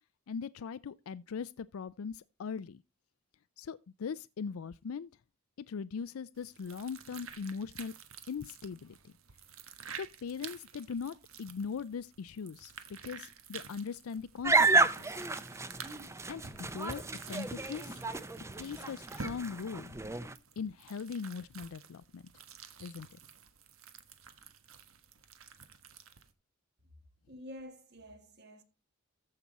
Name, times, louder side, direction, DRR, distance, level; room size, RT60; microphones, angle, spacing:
voice 1, 0.3-2.8 3.6-5.1 5.6-7.9 8.3-9.1 9.9-15.2 16.3-18.0 18.6-20.0 20.6-22.2 22.8-23.2, left 6 dB, 90° left, 0.4 m, -40 dB
sound 1, 6.4-26.3, right 6 dB, 80° right, 1.3 m, -50 dB
sound 2, 14.4-20.3, right 3 dB, 15° right, 0.6 m, -31 dB
voice 2, 27.3-28.6, equal, 55° right, 1.9 m, -48 dB
14.0 x 5.9 x 4.1 m
head